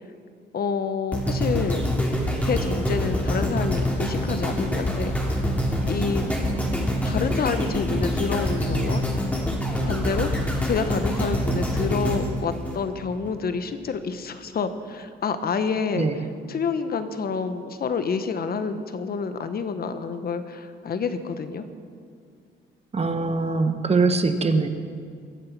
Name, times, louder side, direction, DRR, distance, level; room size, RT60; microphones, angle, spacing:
voice 1, 0.5-1.8 2.4-5.1 5.8-6.2 7.0-9.0 9.8-16.1 16.5-21.7, left 5 dB, 50° left, 10 dB, 1.2 m, -28 dB
sound 1, 1.1-13.3 13.9-14.0, equal, 5° left, 2.9 m, -25 dB
voice 2, 22.9-24.7, right 3 dB, 30° right, 8 dB, 1.3 m, -22 dB
22.5 x 7.6 x 6.1 m, 2.2 s
cardioid pair, 90°, 20 cm